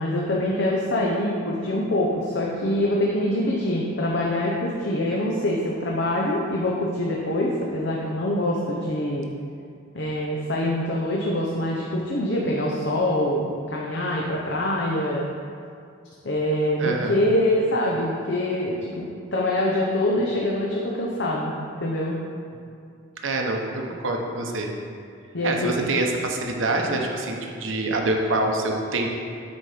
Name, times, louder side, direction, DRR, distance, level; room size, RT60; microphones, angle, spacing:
voice 1, 0.0-9.3 9.9-15.2 16.2-21.5 21.8-22.2 25.3-25.8, left 1 dB, 60° left, -3 dB, 0.7 m, -24 dB
voice 2, 16.8-17.2 23.2-24.7 25.4-29.1, right 2 dB, 75° right, 1 dB, 0.9 m, -25 dB
8.4 x 4.4 x 5.0 m, 2.3 s
head